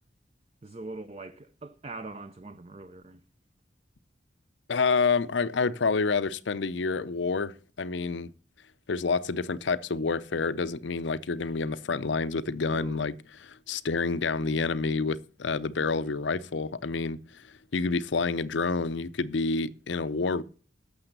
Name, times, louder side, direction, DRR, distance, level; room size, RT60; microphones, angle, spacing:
voice 1, 0.6-3.2 12.7-13.0, right 3 dB, 35° right, 0.5 m, -42 dB
voice 2, 4.7-8.3 8.9-20.4, left 4 dB, 80° left, 0.6 m, -28 dB
12.0 x 7.1 x 6.7 m
head